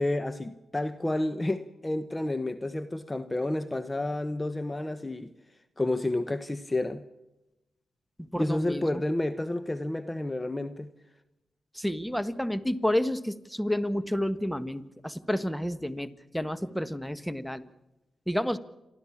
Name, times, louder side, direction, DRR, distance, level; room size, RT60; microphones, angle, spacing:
voice 1, 0.0-5.3 5.8-7.0 8.3-10.9, left 1 dB, 25° left, 12 dB, 1.2 m, -30 dB
voice 2, 8.3-9.0 11.7-17.6 18.3-18.6, left 1 dB, 5° left, 13 dB, 1.5 m, -30 dB
28.5 x 13.0 x 7.3 m, 0.96 s
supercardioid pair, 45°, 0 cm